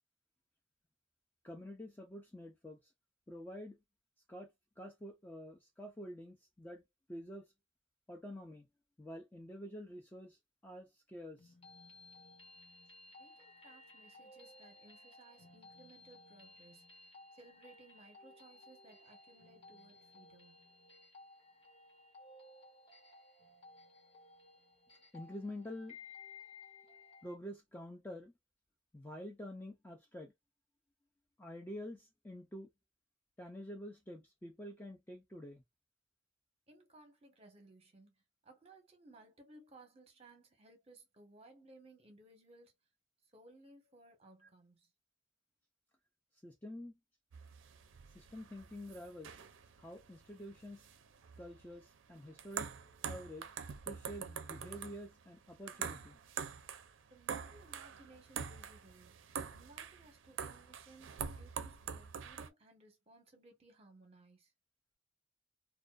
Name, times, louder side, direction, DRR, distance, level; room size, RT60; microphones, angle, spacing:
voice 1, 1.4-2.8 3.3-3.8 4.3-4.5 4.8-6.8 7.1-7.5 8.1-8.7 9.0-10.4 10.6-11.5 25.1-26.0 27.2-28.3 28.9-30.3 31.4-32.7 33.4-35.6 44.4-44.5 46.4-46.9 48.1-49.4 49.8-50.9 51.4-52.7 53.0-53.5 53.9-56.2, left 1 dB, 10° left, 0.3 m, -48 dB
sound 1, 11.4-27.4, left 3 dB, 30° left, 0.8 m, -58 dB
voice 2, 13.2-16.9 17.3-20.6 36.7-38.1 38.4-42.7 43.3-44.8 57.1-59.2 59.5-64.5, right 2 dB, 30° right, 0.8 m, -61 dB
sound 2, 47.3-62.5, right 7 dB, 75° right, 0.4 m, -45 dB
2.5 x 2.2 x 2.3 m
head